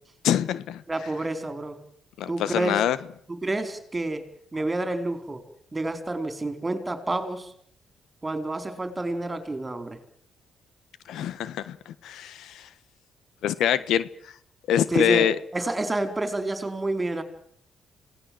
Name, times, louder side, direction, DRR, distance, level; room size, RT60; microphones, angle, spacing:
voice 1, 0.2-0.8 2.2-3.0 11.1-12.6 13.4-14.1 14.7-15.4, left 10 dB, 80° left, 16 dB, 1.3 m, -25 dB
voice 2, 0.9-1.8 2.3-2.8 3.3-4.2 4.5-5.4 5.7-7.5 8.2-10.0 14.9-17.2, right 2 dB, 20° right, 9 dB, 4.2 m, -29 dB
27.5 x 18.0 x 7.8 m, 0.65 s
cardioid pair, 90°, 0 cm